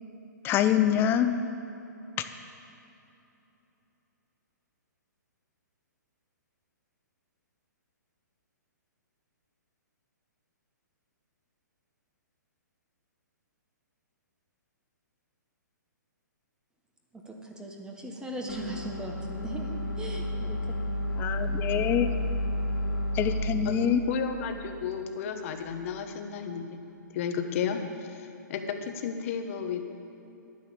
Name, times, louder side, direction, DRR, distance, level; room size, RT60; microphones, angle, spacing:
voice 1, 0.4-1.4 21.2-22.1 23.1-24.0, left 10 dB, 20° left, 9 dB, 0.7 m, -25 dB
voice 2, 17.1-20.6, right 1 dB, 5° right, 0 dB, 1.4 m, -39 dB
sound 1, 18.5-25.6, equal, 85° left, 3.2 m, -32 dB
voice 3, 24.1-26.8 27.1-29.9, left 7 dB, 45° left, 6 dB, 1.3 m, -33 dB
11.5 x 9.7 x 6.9 m, 3.0 s
hypercardioid pair, 140°, 10 cm